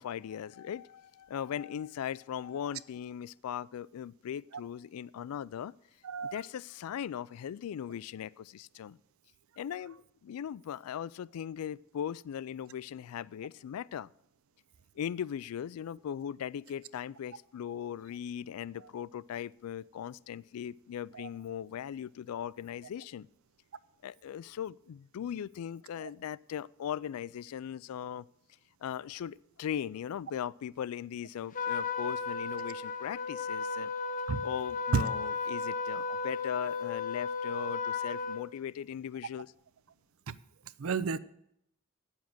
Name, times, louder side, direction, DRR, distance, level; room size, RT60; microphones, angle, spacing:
voice 1, 0.0-5.7 6.3-9.0 9.6-14.1 15.0-23.3 24.0-28.3 28.8-33.9 34.4-39.5, left 9 dB, 85° left, 0.3 m, -39 dB
Trumpet, 31.5-38.4, left 5 dB, 35° left, 0.6 m, -34 dB
voice 2, 40.8-41.2, right 5 dB, 70° right, 0.5 m, -31 dB
8.6 x 7.2 x 7.7 m
head